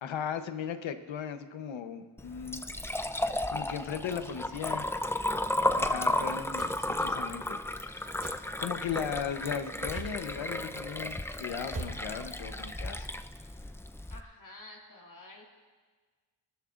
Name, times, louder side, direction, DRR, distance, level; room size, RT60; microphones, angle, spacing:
voice 1, 0.0-2.6 3.5-4.9 5.7-8.1 8.6-13.1, left 7 dB, 85° left, 8 dB, 1.0 m, -37 dB
Liquid, 2.2-14.2, left 1 dB, 5° left, 0.6 m, -33 dB
voice 2, 3.7-4.5 14.1-15.5, left 2 dB, 45° left, -2 dB, 2.5 m, -51 dB
sound 1, 6.6-6.8 8.2-8.4 9.9-10.2 11.7-12.0, right 3 dB, 45° right, 2.4 m, -41 dB
23.0 x 13.0 x 2.5 m, 1.5 s
cardioid pair, 70°, 45 cm